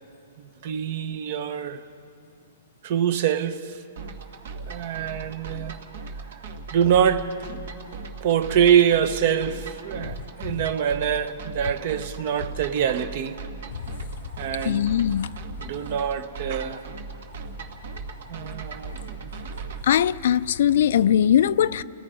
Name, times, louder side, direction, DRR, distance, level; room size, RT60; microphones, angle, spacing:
voice 1, 0.4-1.8 2.8-3.8 4.6-5.8 6.7-13.4 14.4-14.9 15.6-16.9 18.3-18.9, right 9 dB, 45° right, 0.8 m, -25 dB
sound 1, 4.0-19.8, right 4 dB, 65° right, 1.6 m, -38 dB
voice 2, 14.6-15.3 19.8-21.8, left 10 dB, 60° left, 0.4 m, -20 dB
29.5 x 18.5 x 5.1 m
hypercardioid pair, 165°, 0 cm